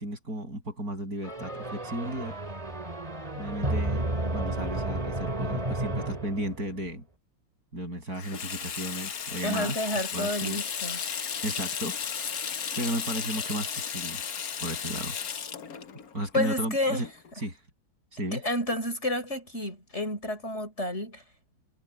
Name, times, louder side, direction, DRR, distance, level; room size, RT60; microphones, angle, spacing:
voice 1, 0.0-2.4 3.3-4.1 4.3-7.0 7.7-9.8 10.1-11.2 11.4-12.5 12.8-14.2 14.6-15.2 16.1-17.1 17.4-17.6 18.1-18.4, right 1 dB, 45° right, 7.9 m, -34 dB
sound 1, 1.2-6.8, right 1 dB, 15° right, 2.6 m, -32 dB
Water tap faucet / Sink (filling or washing), 8.1-17.5, left 7 dB, 50° left, 1.5 m, -35 dB
voice 2, 9.4-11.0 16.3-17.0 18.3-21.2, left 1 dB, 30° left, 5.9 m, -30 dB
omnidirectional pair, 2.2 m